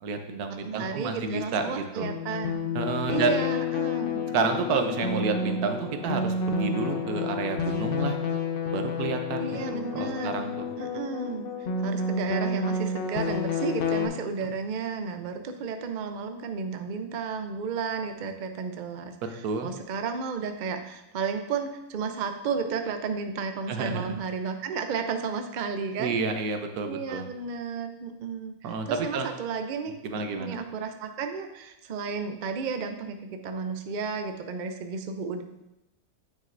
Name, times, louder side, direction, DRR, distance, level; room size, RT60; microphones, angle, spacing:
voice 1, 0.0-2.1 2.7-3.4 4.3-8.2 8.7-10.7 14.4-14.5 19.4-19.7 23.7-24.1 26.0-27.3 28.6-29.3 30.0-30.6, right 4 dB, 85° right, 6 dB, 1.3 m, -30 dB
voice 2, 0.6-2.6 3.1-4.2 9.4-10.4 10.8-11.5 11.8-26.1 26.8-35.4, right 5 dB, 70° right, 6 dB, 0.4 m, -33 dB
sound 1, 2.0-14.1, left 3 dB, 55° left, 0.7 m, -30 dB
9.3 x 6.2 x 2.5 m, 0.90 s
omnidirectional pair, 1.6 m